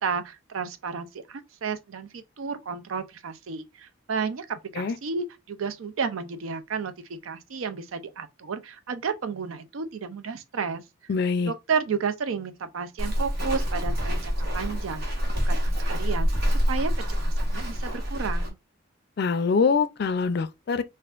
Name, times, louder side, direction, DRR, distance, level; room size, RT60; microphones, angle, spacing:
voice 1, 0.0-10.8 11.5-15.0 15.4-18.6, right 5 dB, 85° right, 0.5 m, -32 dB
voice 2, 11.1-11.5 19.2-20.8, left 5 dB, 55° left, 0.4 m, -24 dB
Walk footsteps, 13.0-18.5, equal, 50° right, 1.1 m, -26 dB
4.2 x 2.5 x 2.4 m
head